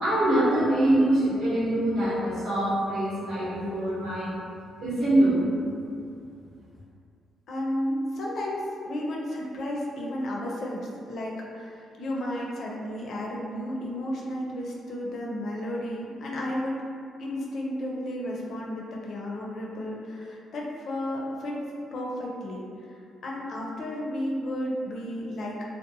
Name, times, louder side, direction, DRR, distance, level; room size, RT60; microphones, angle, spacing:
voice 1, 0.0-4.3 4.8-5.4, right 1 dB, 75° right, -9 dB, 1.1 m, -24 dB
voice 2, 7.5-16.8 17.2-21.6 21.9-23.0 23.2-25.6, left 1 dB, 65° left, -3 dB, 0.5 m, -33 dB
2.8 x 2.0 x 2.6 m, 2.4 s
cardioid pair, 90°, 0 cm